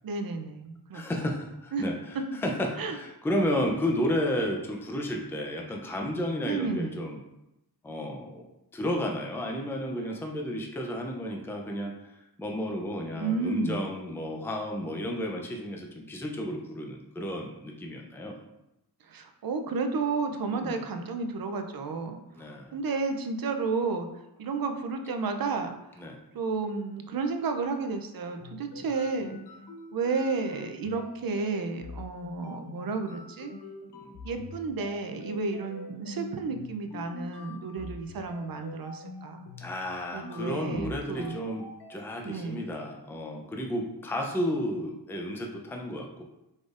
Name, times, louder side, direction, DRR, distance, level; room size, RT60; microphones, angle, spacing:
voice 1, 0.0-1.0 1.7-1.9 2.8-3.0 6.4-7.0 13.1-13.8 19.1-24.1 24.4-26.1 26.3-29.4 29.9-33.5 34.2-39.5 40.1-41.4 42.2-42.7, right 4 dB, 60° right, 6 dB, 0.5 m, -32 dB
voice 2, 0.9-7.2 7.8-8.4 8.7-11.9 12.4-18.4 20.5-20.8 22.3-22.7 26.0-26.2 28.7-28.8 33.9-34.1 39.6-41.6 41.9-46.2, equal, 5° left, 1 dB, 0.4 m, -32 dB
sound 1, 28.2-42.0, left 3 dB, 75° left, 0.6 m, -45 dB
5.0 x 4.1 x 2.4 m, 0.90 s
wide cardioid pair, 150°, 40 cm